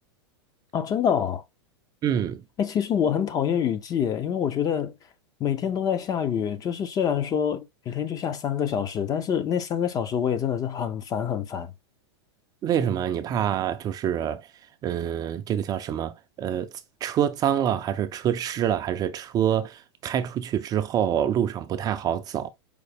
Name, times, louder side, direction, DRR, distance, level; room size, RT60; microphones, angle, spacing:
voice 1, 0.7-1.4 2.6-5.0 5.4-11.7, left 8 dB, 25° left, 0.5 m, -26 dB
voice 2, 2.0-2.4 12.6-14.5 14.8-16.7 17.0-22.5, right 9 dB, 25° right, 0.4 m, -26 dB
5.0 x 2.0 x 3.3 m
hypercardioid pair, 120°, 15 cm